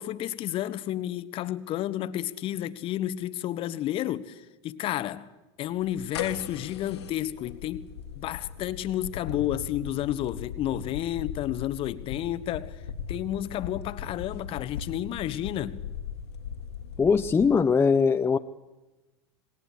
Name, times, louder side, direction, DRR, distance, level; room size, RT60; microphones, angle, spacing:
voice 1, 0.0-5.3 5.6-7.9 8.1-12.8 13.1-15.8, left 12 dB, 40° left, 1.4 m, -31 dB
sound 1, 5.8-17.5, left 7 dB, 70° left, 2.0 m, -39 dB
voice 2, 17.0-18.4, left 5 dB, 15° left, 0.8 m, -21 dB
26.5 x 21.0 x 8.4 m
figure-of-eight pair, 85°, 14 cm